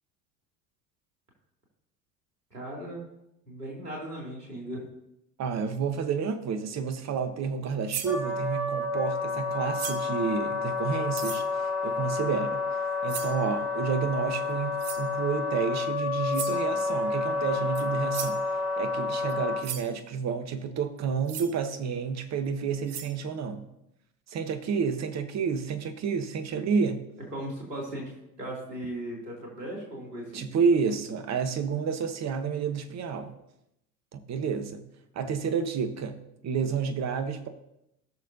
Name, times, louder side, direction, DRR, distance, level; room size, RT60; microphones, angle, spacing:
voice 1, 2.5-3.0 3.4-4.8 27.3-28.1 28.4-30.5, right 1 dB, 85° right, -3 dB, 3.1 m, -37 dB
voice 2, 5.4-12.6 13.0-18.4 18.8-23.7 24.3-27.0 30.3-33.3 34.1-34.8 35.1-36.2 36.4-37.5, right 6 dB, 35° right, 9 dB, 1.2 m, -30 dB
sound 1, 7.9-8.2 9.7-10.1 11.1-11.4 13.1-13.4 14.8-15.1 16.3-16.6 17.7-17.8 18.1-18.4 19.3-19.4 19.6-19.9 21.3-21.5 22.5-22.6 22.9-23.1, right 10 dB, 65° right, 1.0 m, -36 dB
Wind instrument woodwind instrument, 8.0-19.6, left 4 dB, 5° right, 1.6 m, -30 dB
18.5 x 6.5 x 2.8 m, 0.84 s
figure-of-eight pair, 70°, 47 cm